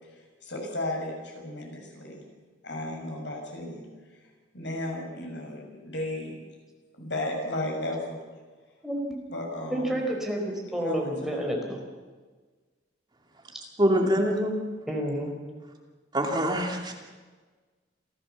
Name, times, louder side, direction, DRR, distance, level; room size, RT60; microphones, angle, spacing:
voice 1, 0.0-2.2 2.6-3.8 4.1-4.2 4.5-6.3 6.9-8.2 9.3-10.0 10.7-11.4 13.9-14.1, left 1 dB, 80° left, 1 dB, 6.4 m, -34 dB
voice 2, 8.8-9.2 9.7-10.4 10.7-11.8 14.9-15.3, equal, ahead, 0 dB, 4.4 m, -29 dB
voice 3, 13.8-14.6 16.1-16.9, equal, 25° right, 2 dB, 2.5 m, -24 dB
27.5 x 15.5 x 7.2 m, 1.4 s
head